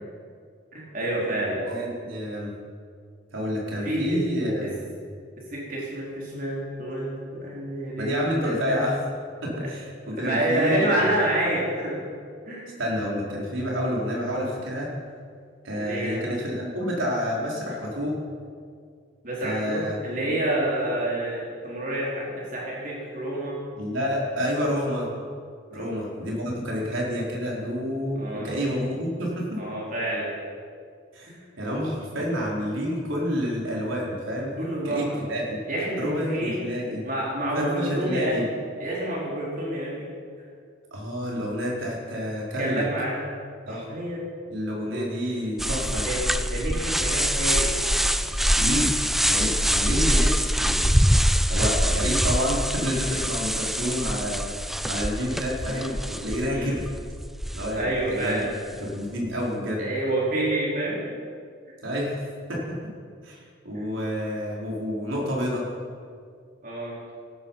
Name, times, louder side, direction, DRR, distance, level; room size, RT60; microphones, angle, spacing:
voice 1, 0.7-1.7 3.8-4.2 4.6-4.7 5.5-8.8 9.6-9.7 10.2-12.0 12.5-12.6 15.8-16.2 19.2-23.6 25.7-26.0 26.7-26.9 28.1-28.6 29.6-30.3 31.3-31.4 34.6-35.2 35.7-36.6 37.0-38.5 38.8-40.1 42.6-43.2 43.7-44.2 44.9-45.1 45.8-47.7 56.5-56.7 57.7-58.5 59.8-61.0 63.7-63.9 66.6-67.0, right 1 dB, 45° right, -5 dB, 4.6 m, -28 dB
voice 2, 1.7-2.5 3.3-4.7 8.0-9.0 9.4-10.9 12.8-14.9 15.6-18.2 19.4-20.0 23.7-25.1 25.7-29.6 31.1-34.5 34.8-35.6 36.0-37.1 37.5-38.4 40.9-42.8 43.7-43.9 44.5-46.1 48.6-48.9 49.3-50.8 51.5-56.8 57.5-58.5 58.8-59.9 61.8-62.9 63.2-65.7, equal, 85° right, -3 dB, 4.6 m, -29 dB
sound 1, 45.6-58.1, equal, ahead, 0.3 m, -24 dB
17.5 x 13.5 x 5.8 m, 2.2 s
head